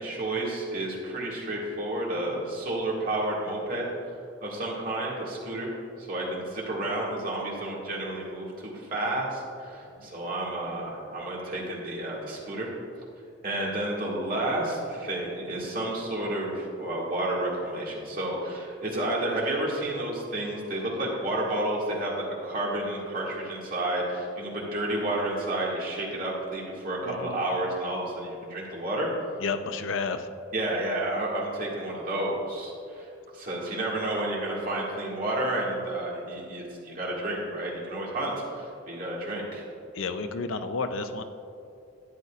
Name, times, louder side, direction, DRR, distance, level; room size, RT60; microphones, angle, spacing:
voice 1, 0.0-3.8 4.4-5.7 6.0-12.7 13.4-29.1 30.5-33.1 33.3-39.6, right 1 dB, 45° right, -4 dB, 2.0 m, -31 dB
voice 2, 27.0-27.4 29.4-30.3 39.9-41.2, left 4 dB, 80° left, 9 dB, 0.5 m, -31 dB
12.0 x 9.2 x 2.5 m, 2.6 s
head